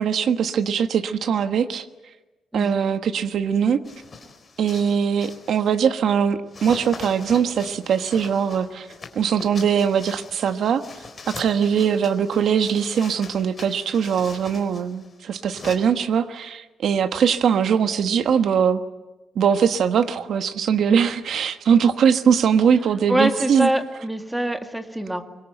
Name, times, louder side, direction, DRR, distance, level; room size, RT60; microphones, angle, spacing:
voice 1, 0.0-1.9 2.5-3.8 4.6-8.9 9.1-10.8 11.3-18.8 19.3-23.7, right 7 dB, 65° right, 8 dB, 1.3 m, -21 dB
voice 2, 2.5-2.9 23.1-25.2, right 1 dB, 5° right, 6 dB, 2.0 m, -24 dB
sound 1, 3.8-5.9 6.5-15.8, left 4 dB, 30° left, 4.2 m, -42 dB
25.5 x 23.5 x 9.1 m, 1.1 s
cardioid pair, 150°, 0 cm